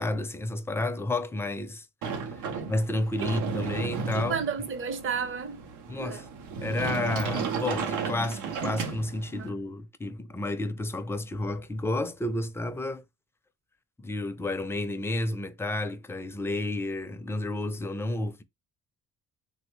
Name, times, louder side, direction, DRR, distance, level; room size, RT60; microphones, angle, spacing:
voice 1, 0.0-1.9 2.3-2.4 2.7-4.4 5.9-6.2 6.6-13.0 14.0-18.4, left 2 dB, 10° left, 0.4 m, -31 dB
Sliding door, 2.0-9.5, right 5 dB, 90° right, 0.6 m, -34 dB
voice 2, 4.1-5.6 6.0-6.2 9.3-9.5, right 6 dB, 45° right, 0.7 m, -32 dB
3.4 x 2.1 x 3.0 m
cardioid pair, 90°, 30 cm